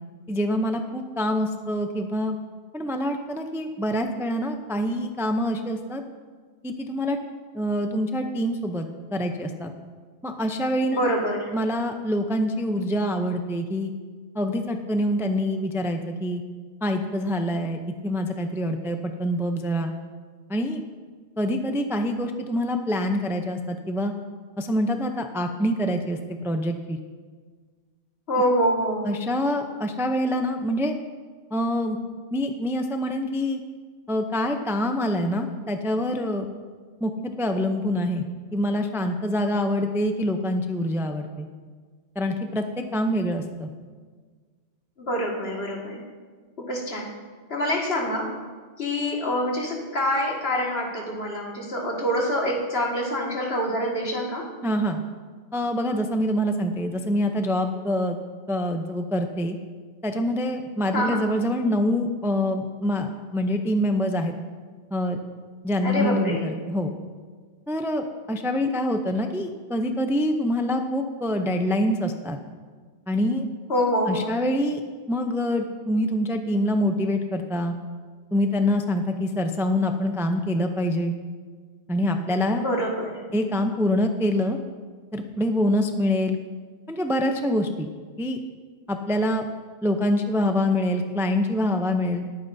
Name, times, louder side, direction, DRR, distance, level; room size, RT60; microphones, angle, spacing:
voice 1, 0.3-2.4 2.7-6.0 6.6-7.2 7.5-9.7 10.2-11.1 11.5-13.9 14.3-16.4 16.8-17.8 18.0-19.9 20.5-20.8 21.4-24.1 24.6-27.0 29.0-30.9 31.5-32.0 32.3-33.6 34.1-36.5 37.0-37.1 37.4-38.2 38.5-41.5 42.2-43.7 54.6-55.0 55.5-58.2 58.5-59.6 60.0-64.4 64.9-65.2 65.6-66.9 67.7-72.4 73.1-73.4 74.1-74.8 75.1-77.7 78.3-81.1 81.9-82.6 83.3-84.6 85.1-86.4 86.9-87.9 88.2-88.4 88.9-89.4 89.8-92.2, left 1 dB, 5° right, 5 dB, 0.5 m, -25 dB
voice 2, 10.9-11.5 28.3-29.1 45.0-46.0 46.6-47.1 47.5-48.3 48.8-54.4 60.9-61.2 65.8-66.5 73.7-74.4 82.6-83.2, equal, 65° left, -2 dB, 2.2 m, -26 dB
20.5 x 9.0 x 2.7 m, 1.5 s
omnidirectional pair, 1.1 m